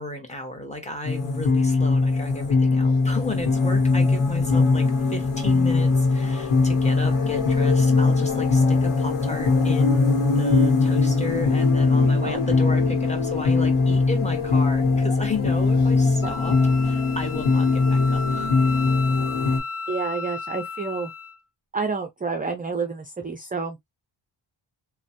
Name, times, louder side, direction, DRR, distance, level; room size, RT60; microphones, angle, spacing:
voice 1, 0.0-16.6 16.8-18.5, left 1 dB, 15° left, 1.1 m, -34 dB
sound 1, 1.0-19.6, left 3 dB, 85° left, 1.0 m, -21 dB
voice 2, 12.0-12.4 16.2-16.3 19.9-21.1 21.7-23.8, right 4 dB, 20° right, 0.4 m, -29 dB
Wind instrument woodwind instrument, 16.2-21.4, left 4 dB, 45° left, 0.6 m, -34 dB
3.1 x 2.2 x 2.7 m
wide cardioid pair, 85°, 49 cm